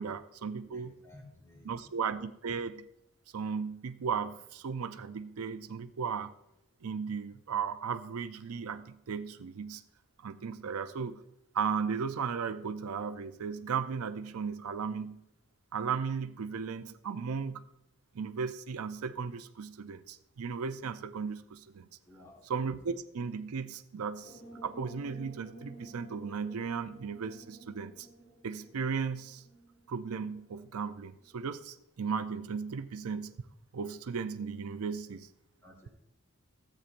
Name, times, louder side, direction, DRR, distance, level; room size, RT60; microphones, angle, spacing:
voice 1, 0.0-0.9 1.6-2.9 3.3-6.3 6.8-9.8 10.2-11.2 11.5-15.2 15.7-17.6 18.1-21.9 22.4-28.1 28.4-29.4 29.9-33.3 33.7-35.3, right 6 dB, 85° right, 10 dB, 0.5 m, -36 dB
voice 2, 0.6-2.0 22.1-22.5 35.6-35.9, left 1 dB, 15° left, -1 dB, 1.8 m, -55 dB
sound 1, 24.2-30.6, right 2 dB, 75° left, 2.8 m, -53 dB
14.0 x 8.5 x 2.6 m, 0.84 s
head